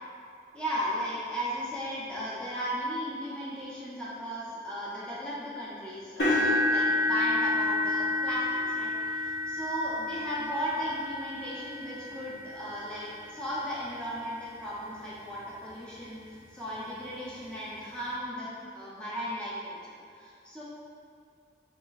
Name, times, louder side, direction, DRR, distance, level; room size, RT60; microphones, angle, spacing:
voice 1, 0.5-9.3 9.6-16.2 16.5-19.8 20.2-20.6, equal, 5° left, -9 dB, 0.9 m, -36 dB
sound 1, 6.2-14.2 14.9-15.1 15.5-15.6 17.0-17.1, left 2 dB, 75° left, 1.3 m, -30 dB
4.3 x 4.1 x 2.6 m, 2.4 s
head